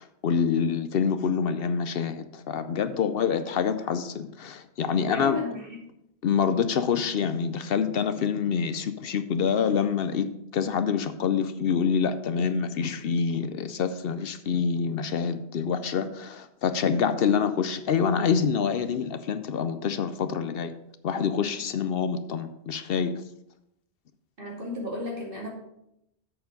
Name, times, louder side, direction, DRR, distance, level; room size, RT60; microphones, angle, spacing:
voice 1, 0.0-5.4 6.2-20.7 21.0-23.1, left 6 dB, 70° left, 11 dB, 0.8 m, -26 dB
voice 2, 4.9-5.7 24.4-25.5, left 2 dB, 55° right, -2 dB, 2.7 m, -33 dB
7.6 x 6.9 x 5.2 m, 0.81 s
omnidirectional pair, 1.1 m